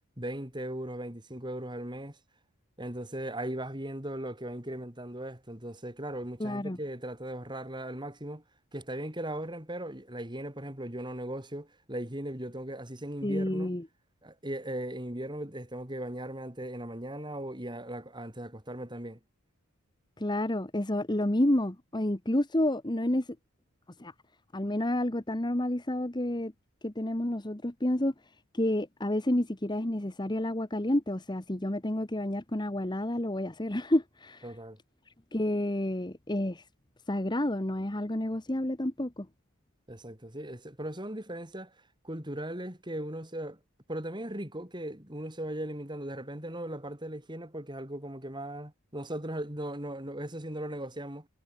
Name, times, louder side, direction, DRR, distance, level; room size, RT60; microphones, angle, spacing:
voice 1, 0.2-2.2 2.8-8.4 8.7-13.7 14.2-19.2 34.4-34.8 39.9-41.7 42.0-43.6 43.9-51.3, right 1 dB, 20° right, 3.5 m, -38 dB
voice 2, 6.4-6.8 13.2-13.8 20.2-23.3 24.0-24.1 24.5-26.5 26.8-28.1 28.5-34.5 35.3-36.6 37.1-39.3, left 1 dB, 20° left, 1.2 m, -29 dB
head